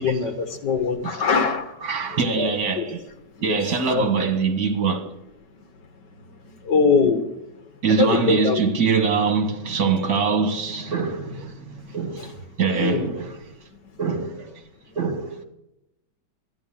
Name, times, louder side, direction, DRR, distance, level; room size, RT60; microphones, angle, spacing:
voice 1, 0.0-1.8 2.1-2.5 2.8-2.9 3.4-3.6 3.9-4.1 6.6-7.3 8.0-8.6 12.2-12.3 12.8-13.1, left 5 dB, 75° left, 2.2 m, -22 dB
voice 2, 1.8-3.1 3.4-5.1 7.8-13.4 14.0-14.6 15.0-15.4, right 5 dB, 60° right, 2.2 m, -24 dB
12.0 x 10.0 x 7.4 m
omnidirectional pair, 1.9 m